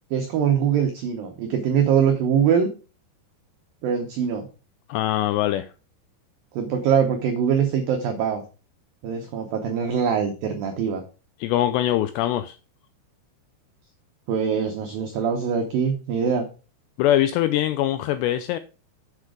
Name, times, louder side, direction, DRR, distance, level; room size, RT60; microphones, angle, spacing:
voice 1, 0.1-2.7 3.8-4.5 6.5-8.4 9.0-11.0 14.3-16.5, right 7 dB, 85° right, 2.0 m, -23 dB
voice 2, 4.9-5.7 11.4-12.6 17.0-18.6, left 13 dB, 85° left, 2.4 m, -22 dB
7.6 x 6.3 x 4.8 m
omnidirectional pair, 5.3 m